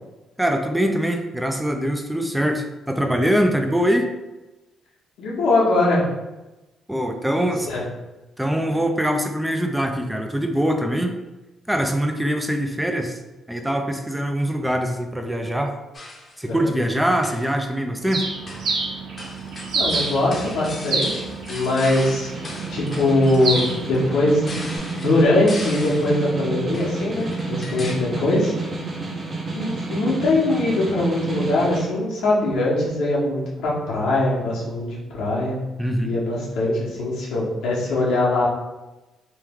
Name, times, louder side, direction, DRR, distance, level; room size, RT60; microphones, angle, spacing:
voice 1, 0.4-4.1 6.9-7.7 8.4-11.1 11.7-13.2 13.5-15.7 16.4-18.2 35.8-36.1, equal, 5° right, 4 dB, 0.4 m, -23 dB
voice 2, 5.2-6.0 7.4-7.8 16.5-16.7 19.7-21.2 21.5-22.3 22.7-24.4 24.9-28.5 29.5-35.6 36.0-38.5, left 2 dB, 85° left, -5 dB, 1.0 m, -21 dB
sound 1, 15.9-16.4 17.1-17.6 18.5-18.8 19.2-26.2 26.7-27.9, left 2 dB, 35° left, 0.7 m, -38 dB
Bird, 18.1-24.8, right 3 dB, 75° right, 0.7 m, -29 dB
Snare drum, 22.3-31.9, right 3 dB, 35° right, 0.7 m, -30 dB
3.1 x 2.2 x 3.5 m, 1.1 s
cardioid pair, 90°, 0 cm